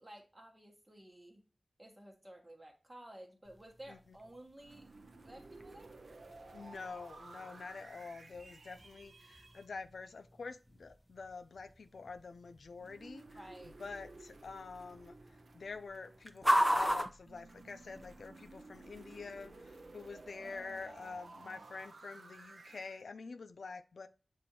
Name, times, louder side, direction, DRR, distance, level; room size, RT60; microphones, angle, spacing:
voice 1, 0.0-1.4 1.8-4.9 5.2-5.9 13.3-13.8 20.4-21.6, right 1 dB, 20° right, 1.2 m, -54 dB
sound 1, 3.4-18.3, equal, 5° right, 0.6 m, -40 dB
sound 2, 4.6-9.7 12.8-16.6 17.3-23.0, right 3 dB, 70° right, 0.5 m, -55 dB
voice 2, 6.5-24.1, left 4 dB, 85° left, 0.3 m, -47 dB
6.9 x 2.5 x 2.9 m
wide cardioid pair, 65°, 0 cm